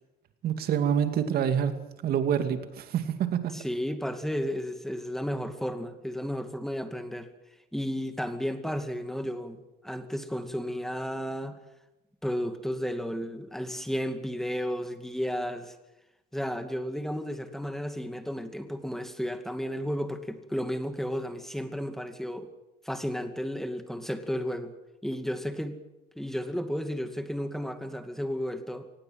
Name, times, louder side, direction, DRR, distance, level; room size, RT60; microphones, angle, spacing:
voice 1, 0.4-1.7 2.0-3.5, right 8 dB, 65° right, 8 dB, 2.5 m, -26 dB
voice 2, 3.5-7.3 7.7-11.6 12.2-15.8 16.3-22.5 22.8-24.7 25.0-25.8 26.2-28.9, equal, ahead, 8 dB, 2.3 m, -33 dB
24.5 x 19.5 x 7.8 m, 0.95 s
cardioid pair, 110°, 17 cm